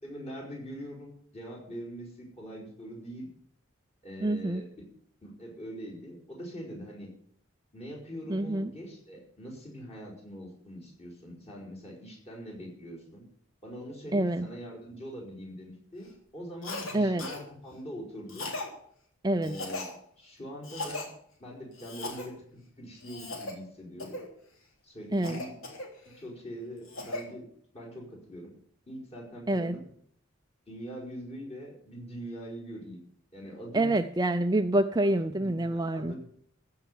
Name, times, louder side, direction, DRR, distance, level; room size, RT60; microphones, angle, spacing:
voice 1, 0.0-3.3 4.0-4.7 5.2-7.1 7.7-13.2 13.6-18.5 19.4-19.9 20.2-21.1 21.4-22.4 22.8-24.2 24.8-25.5 26.2-27.5 27.7-28.5 28.9-29.8 30.7-33.0 33.3-34.0 35.0-36.2, equal, 30° left, -2 dB, 4.8 m, -43 dB
voice 2, 4.2-4.6 8.3-8.7 14.1-14.5 16.9-17.3 19.2-19.6 25.1-25.4 29.5-29.8 33.7-36.1, right 1 dB, 20° right, 8 dB, 0.4 m, -27 dB
Cough, 16.6-16.9 17.2-17.4 18.3-18.7 19.4-19.9 20.6-21.1 21.8-22.3 23.0-23.5 24.0-24.3 25.2-26.2 26.6-27.2, left 2 dB, 70° left, 3.5 m, -38 dB
15.0 x 5.7 x 9.8 m, 0.65 s
head